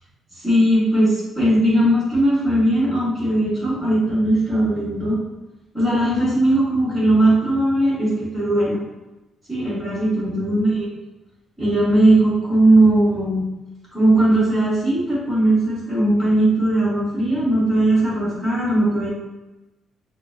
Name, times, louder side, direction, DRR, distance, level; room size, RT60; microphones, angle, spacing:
voice 1, 0.3-5.2 5.7-8.8 9.5-10.9 11.6-13.4 13.9-19.1, right 1 dB, ahead, -13 dB, 1.1 m, -18 dB
5.8 x 2.1 x 2.4 m, 1.0 s
cardioid pair, 180°, 0 cm